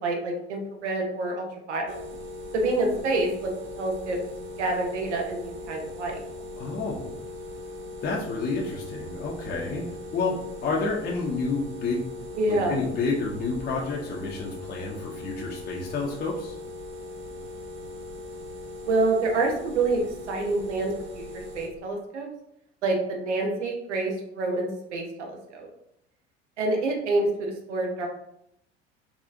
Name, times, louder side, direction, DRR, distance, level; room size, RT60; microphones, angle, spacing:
voice 1, 0.0-2.0 2.5-3.5 3.8-4.2 4.6-6.2 12.4-12.8 18.8-20.0 20.3-21.2 21.5-22.3 22.8-25.7 26.6-28.1, right 2 dB, 75° right, 1 dB, 0.8 m, -27 dB
sound 1, 1.9-21.7, left 2 dB, 35° right, 0.6 m, -39 dB
voice 2, 6.6-7.3 8.0-10.4 10.6-12.1 12.5-16.6, left 3 dB, 25° left, -3 dB, 0.6 m, -30 dB
3.7 x 2.4 x 2.5 m, 0.76 s
figure-of-eight pair, 65°, 35 cm